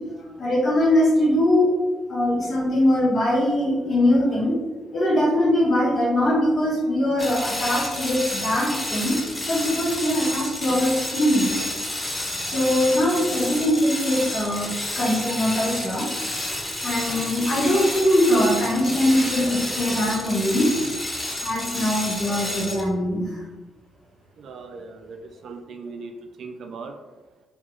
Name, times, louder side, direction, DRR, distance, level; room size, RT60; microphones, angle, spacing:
voice 1, 0.4-1.7 2.1-4.6 4.9-9.2 9.5-11.6 12.4-16.5 16.8-20.7 21.4-23.4, left 1 dB, 50° left, -4 dB, 1.1 m, -22 dB
sound 1, 7.2-22.9, left 1 dB, 20° left, 0.7 m, -30 dB
voice 2, 24.4-26.1 26.4-26.9, right 4 dB, 65° right, 5 dB, 0.3 m, -38 dB
2.9 x 2.7 x 2.3 m, 1.3 s
hypercardioid pair, 50°, 0 cm